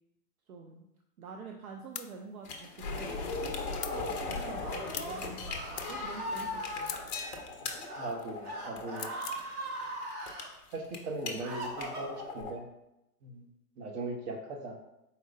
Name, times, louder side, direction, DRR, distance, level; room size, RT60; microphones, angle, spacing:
voice 1, 0.5-0.9 1.2-2.7 3.0-7.0, right 5 dB, 60° right, 2 dB, 0.6 m, -47 dB
sound 1, 1.9-2.1 3.8-4.0 4.9-5.2 5.8-5.9 6.8-7.3 8.9-9.4, left 9 dB, 75° left, 0.5 m, -40 dB
sound 2, 2.4-12.5, left 3 dB, 30° left, 0.5 m, -39 dB
Screaming, 4.6-7.0 7.8-8.1 8.4-10.5 11.0-12.4, equal, 20° right, 0.6 m, -39 dB
voice 2, 8.0-9.1 10.7-12.6 13.2-13.5 13.8-14.7, right 2 dB, 40° right, 2 dB, 1.0 m, -39 dB
4.5 x 4.2 x 2.6 m, 0.89 s
figure-of-eight pair, 110°, 49 cm